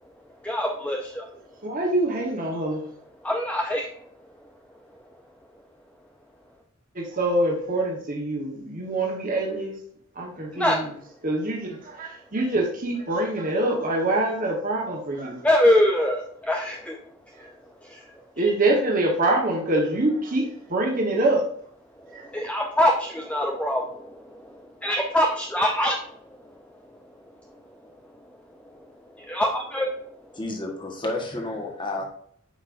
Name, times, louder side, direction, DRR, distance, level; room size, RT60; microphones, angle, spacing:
voice 1, 0.4-1.3 3.2-4.1 4.4-4.5 10.5-10.8 15.3-17.0 17.4-17.5 17.8-18.0 18.4-18.5 22.0-27.1 27.5-30.3, left 1 dB, 5° left, 1 dB, 0.5 m, -26 dB
voice 2, 1.6-2.8 6.9-9.7 10.2-10.8 11.2-15.4 18.4-21.4 22.1-22.2, right 2 dB, 40° right, -1 dB, 1.2 m, -25 dB
voice 3, 30.4-32.1, left 2 dB, 25° left, 1 dB, 1.3 m, -30 dB
8.3 x 5.3 x 2.6 m, 0.62 s
head